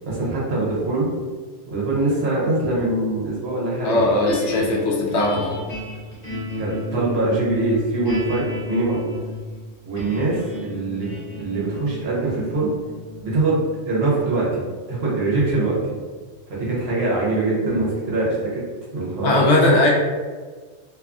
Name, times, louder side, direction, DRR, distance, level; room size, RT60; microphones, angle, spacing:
voice 1, 0.0-1.1 1.7-4.0 4.5-4.7 6.6-9.0 9.8-12.7 13.2-13.6 13.9-14.6 14.9-15.9 16.5-18.6 18.9-19.4, right 2 dB, 65° right, -5 dB, 1.0 m, -23 dB
voice 2, 3.8-5.6 19.2-19.9, left 1 dB, 70° left, -2 dB, 0.8 m, -19 dB
sound 1, 4.3-16.6, left 2 dB, 50° left, 1.1 m, -33 dB
2.6 x 2.3 x 2.4 m, 1.4 s
omnidirectional pair, 1.2 m